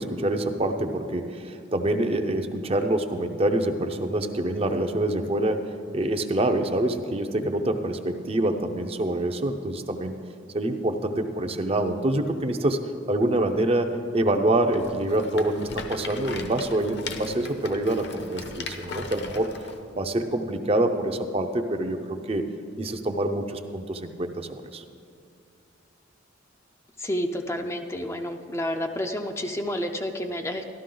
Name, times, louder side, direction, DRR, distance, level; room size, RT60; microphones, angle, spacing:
voice 1, 0.0-10.3 10.5-12.8 13.1-19.5 19.9-22.5 22.8-24.8, right 1 dB, 30° right, 6 dB, 0.6 m, -26 dB
Rattle, 14.7-19.8, left 4 dB, 60° left, 0.9 m, -38 dB
voice 2, 27.0-30.7, equal, 15° left, 4 dB, 0.4 m, -30 dB
13.0 x 12.5 x 3.8 m, 2.4 s
head